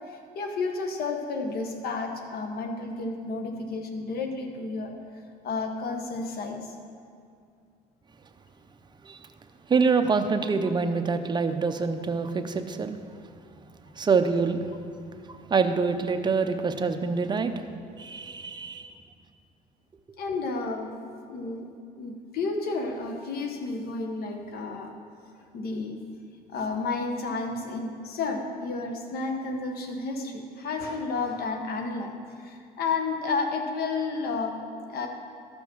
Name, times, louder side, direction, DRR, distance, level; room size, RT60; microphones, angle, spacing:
voice 1, 0.1-4.9 5.4-6.7 20.2-20.9 21.3-21.7 22.0-24.9 25.5-26.0 26.5-32.1 32.4-35.1, left 3 dB, 65° left, 4 dB, 1.2 m, -31 dB
voice 2, 9.7-13.0 14.0-14.6 15.3-17.5 18.0-18.9, right 5 dB, 25° right, 7 dB, 0.7 m, -25 dB
13.0 x 5.3 x 6.2 m, 2.4 s
cardioid pair, 110°, 17 cm